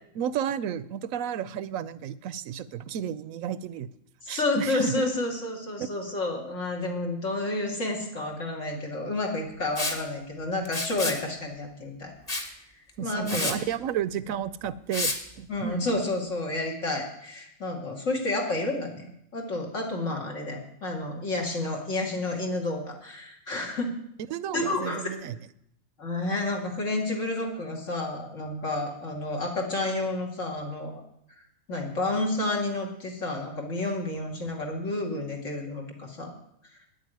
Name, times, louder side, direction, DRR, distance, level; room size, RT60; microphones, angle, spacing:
voice 1, 0.1-3.9 4.3-5.0 13.0-16.0 24.3-25.4, right 8 dB, 85° right, 16 dB, 1.1 m, -32 dB
voice 2, 4.2-12.1 13.0-13.6 15.5-19.0 19.3-23.9 24.5-25.1 26.0-31.0 31.7-36.3, left 2 dB, 70° left, 0 dB, 2.7 m, -30 dB
Liquid, 9.8-10.0 10.7-11.2 12.3-12.5 12.9-13.0 13.3-13.6 14.9-15.2, left 2 dB, 30° left, 1.5 m, -29 dB
9.6 x 8.1 x 9.0 m, 0.74 s
omnidirectional pair, 1.4 m